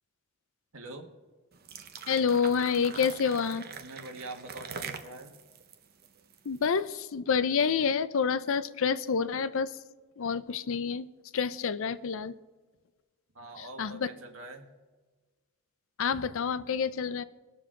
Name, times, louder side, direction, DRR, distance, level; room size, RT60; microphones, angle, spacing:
voice 1, 0.7-1.1 3.8-5.4 13.3-14.7, right 2 dB, 70° right, 4 dB, 1.5 m, -44 dB
sound 1, 1.5-6.8, right 6 dB, 45° right, 0.8 m, -43 dB
voice 2, 2.1-3.7 6.4-9.8 10.2-11.1 11.3-12.3 13.6-14.1 16.0-17.2, left 6 dB, 65° left, 14 dB, 0.5 m, -28 dB
20.5 x 7.0 x 3.8 m, 1.3 s
head